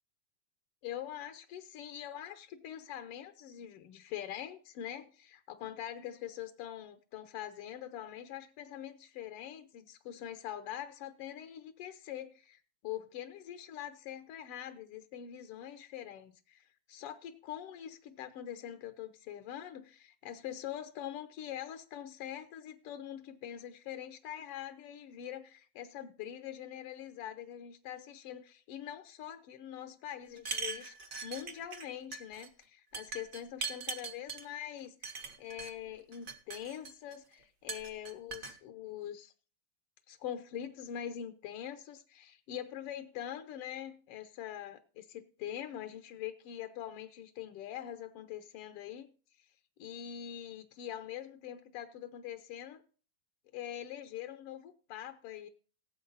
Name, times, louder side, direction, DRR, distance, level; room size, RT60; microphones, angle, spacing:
voice 1, 0.8-30.9 31.2-39.3 40.1-49.1 49.8-52.8 53.5-55.5, left 10 dB, 75° left, 9 dB, 1.4 m, -44 dB
sound 1, 30.4-31.9 32.1-32.5 32.9-34.4 35.0-35.7 36.1-37.1 37.7-38.5, right 5 dB, 65° right, 0.8 m, -41 dB
18.0 x 7.9 x 4.0 m, 0.38 s
omnidirectional pair, 3.5 m